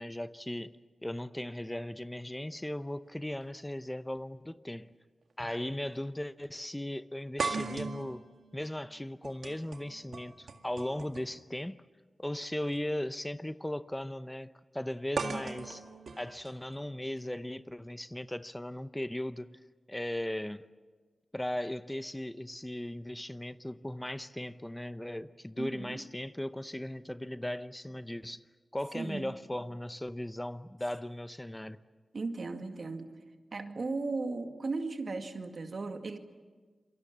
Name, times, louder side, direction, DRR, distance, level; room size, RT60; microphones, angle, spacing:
voice 1, 0.0-4.9 5.4-8.3 8.5-11.8 12.2-15.9 16.2-19.6 19.9-20.7 21.3-28.4 28.7-31.8, left 1 dB, 15° left, 0.8 m, -37 dB
sound 1, 4.2-4.3 5.4-5.6 5.9-6.0 7.4-11.4 12.6-12.8 15.2-17.2, right 4 dB, 80° right, 1.9 m, -39 dB
voice 2, 25.6-26.0 28.9-29.3 32.1-33.1 33.5-36.2, right 3 dB, 65° right, 2.1 m, -36 dB
28.0 x 23.5 x 7.4 m
cardioid pair, 50°, 0 cm